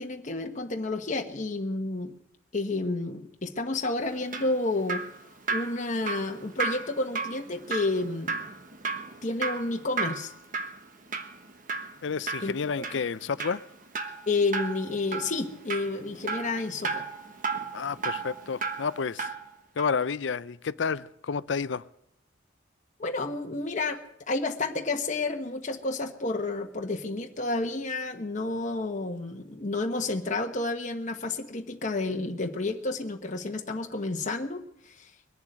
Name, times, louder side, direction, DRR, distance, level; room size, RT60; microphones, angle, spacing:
voice 1, 0.0-2.2 2.5-5.0 5.5-8.4 9.2-10.3 12.4-12.8 14.3-17.1 23.0-24.0 24.3-35.1, left 2 dB, 40° left, 3 dB, 1.2 m, -30 dB
Drip, 4.0-19.5 19.8-19.9, right 4 dB, 45° right, 1.3 m, -34 dB
voice 2, 12.0-13.6 17.7-19.3 19.8-21.8, left 5 dB, 65° left, 17 dB, 0.5 m, -30 dB
21.5 x 7.2 x 9.2 m, 0.80 s
head